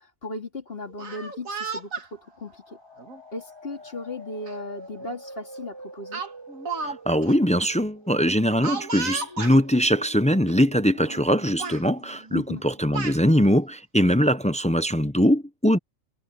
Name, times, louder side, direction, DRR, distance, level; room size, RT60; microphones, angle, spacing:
voice 1, 0.2-2.8 3.3-6.2 12.3-12.6, left 2 dB, 45° left, 3.3 m, -36 dB
Speech, 0.9-2.1 3.0-3.2 4.5-4.6 4.9-5.2 6.1-7.0 7.2-7.3 8.6-9.6 10.5-10.6 10.9-11.3 11.6-11.8 12.6-13.2, right 4 dB, 80° right, 2.5 m, -33 dB
sound 1, 1.9-13.5, equal, 20° right, 3.4 m, -46 dB
voice 2, 6.8-15.8, equal, 10° left, 0.4 m, -22 dB
omnidirectional pair, 1.4 m